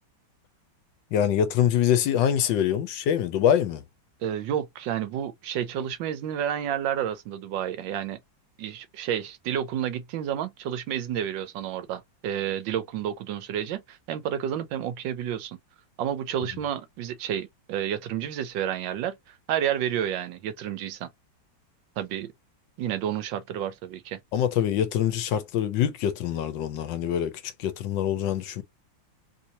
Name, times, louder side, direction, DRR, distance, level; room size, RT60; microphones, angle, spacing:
voice 1, 1.1-3.8 24.3-28.6, left 9 dB, 75° left, 1.3 m, -24 dB
voice 2, 4.2-8.2 8.6-15.6 16.0-21.1 22.0-22.3 22.8-24.2, right 10 dB, 75° right, 1.3 m, -30 dB
3.3 x 2.8 x 2.6 m
omnidirectional pair, 2.1 m